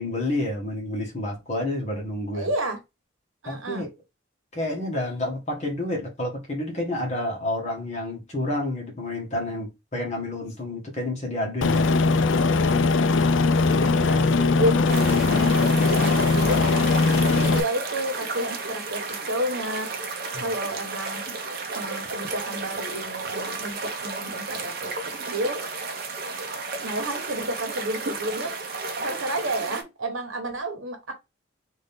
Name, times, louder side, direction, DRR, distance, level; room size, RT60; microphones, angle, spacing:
voice 1, 0.0-2.5 3.4-3.9 4.5-11.8 20.3-20.4, left 1 dB, 35° left, 1.5 m, -29 dB
voice 2, 2.3-2.8 3.4-3.9 13.7-20.0 20.4-21.3 21.7-25.7 26.8-28.6 29.0-31.1, right 1 dB, 80° right, 1.2 m, -31 dB
Aircraft, 11.6-17.6, left 3 dB, 70° left, 0.4 m, -20 dB
sound 1, 14.9-29.8, right 4 dB, 45° right, 0.8 m, -33 dB
3.8 x 2.7 x 3.4 m
head